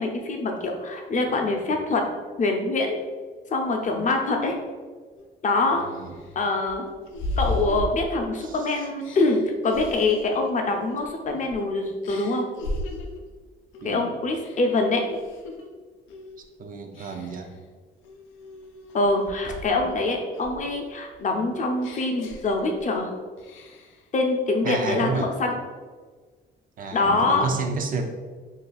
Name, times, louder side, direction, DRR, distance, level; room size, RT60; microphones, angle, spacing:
voice 1, 0.0-2.0 2.4-3.0 3.5-4.6 5.4-5.8 6.4-6.9 7.4-12.5 13.8-15.0 18.9-23.1 24.1-25.6 26.9-27.5, left 2 dB, 40° left, 3 dB, 0.6 m, -24 dB
sound 1, 5.2-5.3 5.8-8.5 9.0-11.6 12.0-13.3 13.7-14.0 14.4-15.7 16.1-16.4 16.9-17.5 18.0-20.0 20.3-23.0 23.4-24.0, left 1 dB, 85° left, 0.5 m, -36 dB
voice 2, 5.7-6.1 8.4-8.8 13.8-14.2 16.6-17.5 24.6-25.3 26.8-28.0, right 4 dB, 45° right, 5 dB, 0.5 m, -31 dB
2.6 x 2.3 x 3.9 m, 1.5 s
cardioid pair, 90°, 20 cm